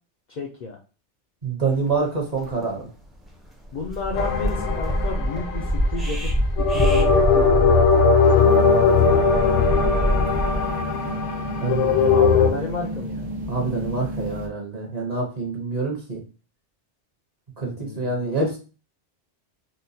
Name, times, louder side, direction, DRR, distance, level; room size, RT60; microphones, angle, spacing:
voice 1, 0.3-0.8 3.7-6.3 6.6-9.2 11.8-13.3 17.6-18.2, left 3 dB, 60° left, 0 dB, 0.5 m, -32 dB
voice 2, 1.4-2.9 11.6-12.0 13.5-16.2 17.6-18.6, right 3 dB, 40° right, -1 dB, 0.8 m, -26 dB
sound 1, 2.0-2.1 2.3-2.5 3.0-3.3 3.6-10.7, equal, ahead, 0.4 m, -25 dB
sound 2, 4.1-5.9 6.6-12.5, left 5 dB, 85° left, 1.0 m, -19 dB
sound 3, 8.3-14.5, equal, 75° right, 1.0 m, -32 dB
3.9 x 2.2 x 2.6 m, 0.35 s
omnidirectional pair, 1.2 m